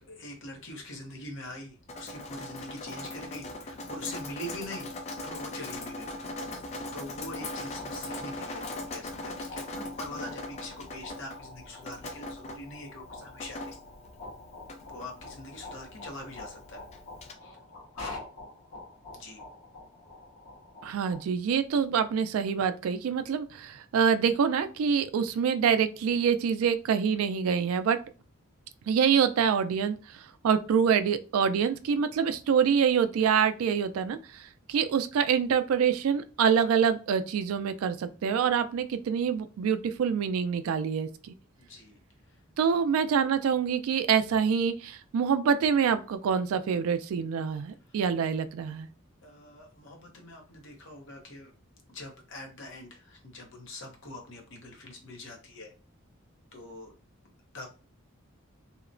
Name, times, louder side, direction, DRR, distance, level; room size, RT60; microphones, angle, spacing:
voice 1, 0.0-4.9 5.2-6.1 6.9-13.7 14.9-16.8 17.4-17.6 19.1-19.4 41.6-42.0 42.2-42.4 47.9-48.0 49.2-51.5 51.9-55.7 56.5-56.9 57.5-57.7, left 1 dB, 60° left, 1 dB, 0.8 m, -43 dB
Drip, 1.9-17.3, left 2 dB, 30° left, 0.3 m, -40 dB
sound 1, 7.3-21.2, left 2 dB, 80° left, 1.2 m, -47 dB
voice 2, 20.8-28.0 28.9-29.9 30.4-34.4 34.7-41.3 42.6-48.9, right 7 dB, 75° right, 12 dB, 0.3 m, -26 dB
2.8 x 2.0 x 2.5 m, 0.35 s
head